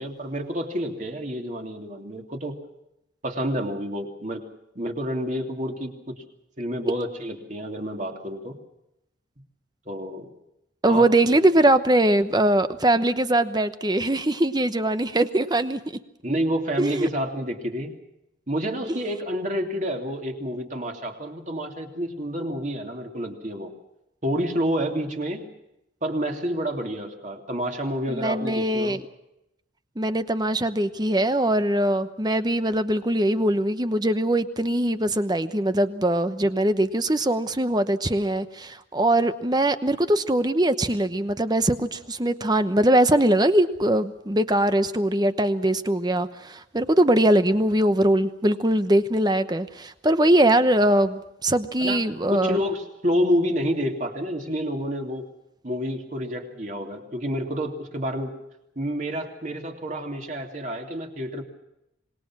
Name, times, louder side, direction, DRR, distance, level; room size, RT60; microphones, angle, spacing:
voice 1, 0.0-2.6 3.2-4.4 4.7-6.2 6.6-8.6 9.9-10.3 10.9-11.1 16.2-17.9 18.5-23.7 24.2-25.4 26.0-29.0 51.8-52.0 52.3-55.2 55.6-58.3 58.8-61.4, equal, 40° right, 3 dB, 3.0 m, -29 dB
voice 2, 10.8-15.8 16.8-17.1 28.1-29.0 30.0-52.6, right 1 dB, 20° right, 10 dB, 1.0 m, -22 dB
26.0 x 20.5 x 6.2 m, 0.85 s
head